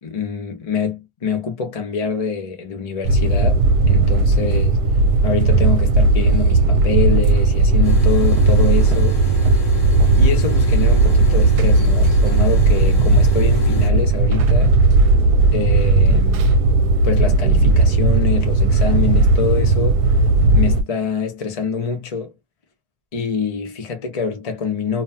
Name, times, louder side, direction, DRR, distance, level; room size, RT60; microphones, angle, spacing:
voice 1, 0.0-4.8 5.2-9.2 10.2-14.8 15.5-16.5 17.0-20.0 20.5-22.3 23.1-25.0, left 5 dB, 40° left, 0.5 m, -25 dB
sound 1, 3.0-20.8, right 2 dB, 75° right, 1.1 m, -15 dB
sound 2, 7.8-13.9, left 1 dB, 60° left, 1.0 m, -34 dB
2.8 x 2.2 x 2.6 m
omnidirectional pair, 1.8 m